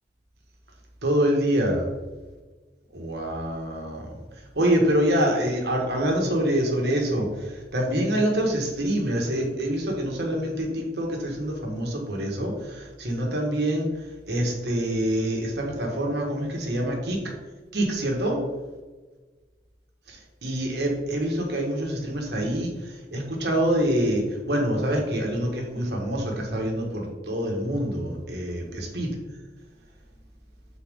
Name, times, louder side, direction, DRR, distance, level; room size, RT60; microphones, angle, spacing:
voice 1, 1.0-1.9 2.9-4.1 4.5-13.9 14.3-17.2 17.7-18.4 20.1-29.1, right 1 dB, 70° right, 0 dB, 1.5 m, -26 dB
6.8 x 4.2 x 3.6 m, 1.3 s
head